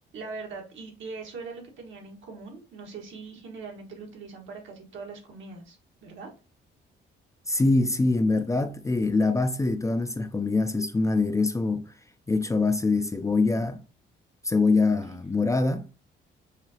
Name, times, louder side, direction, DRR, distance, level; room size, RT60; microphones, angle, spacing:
voice 1, 0.1-6.3, right 4 dB, 75° right, 1.5 m, -41 dB
voice 2, 7.5-11.9 12.3-13.8 14.4-15.8, left 3 dB, 15° left, 0.4 m, -24 dB
4.9 x 2.7 x 2.7 m
cardioid pair, 90°, 20 cm